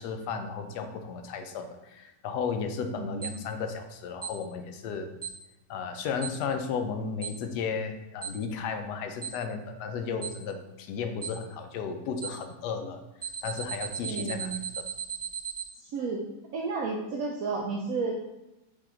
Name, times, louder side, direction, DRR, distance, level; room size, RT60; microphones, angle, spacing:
voice 1, 0.0-5.1 5.7-13.0 13.4-14.5 14.8-14.9, left 5 dB, 85° left, 7 dB, 1.1 m, -34 dB
voice 2, 3.0-3.5 14.0-14.7 15.7-16.2 16.5-18.1, right 4 dB, 70° right, -1 dB, 0.9 m, -32 dB
Alarm, 3.2-3.3 4.2-4.3 5.2-5.3 6.2-6.3 7.2-7.3 8.2-8.3 9.2-9.3 10.2-10.3 11.2-11.3 12.2-12.3 13.2-15.6, right 7 dB, 20° right, 0.6 m, -35 dB
5.1 x 2.8 x 3.7 m, 0.96 s
omnidirectional pair, 1.7 m